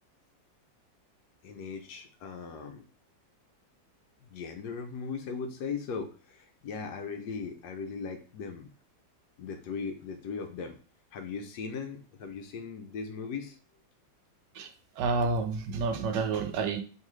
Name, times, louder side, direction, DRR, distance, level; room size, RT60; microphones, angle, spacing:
voice 1, 1.4-2.8 4.3-8.7 9.4-10.8 11.1-13.6, left 5 dB, 75° left, 1.1 m, -38 dB
voice 2, 15.0-16.8, right 4 dB, 75° right, 1.2 m, -29 dB
4.6 x 3.3 x 3.1 m
omnidirectional pair, 2.0 m